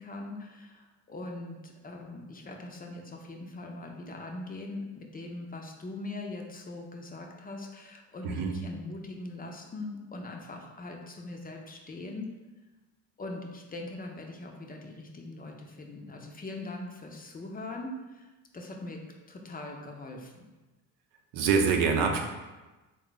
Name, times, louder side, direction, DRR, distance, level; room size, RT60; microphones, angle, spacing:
voice 1, 0.0-12.3 13.2-18.3 18.5-19.0 19.3-20.5, left 2 dB, 20° left, 1 dB, 0.5 m, -41 dB
voice 2, 21.3-22.2, right 5 dB, 80° right, 3 dB, 0.7 m, -25 dB
3.6 x 2.3 x 3.9 m, 1.2 s
supercardioid pair, 80°, 42 cm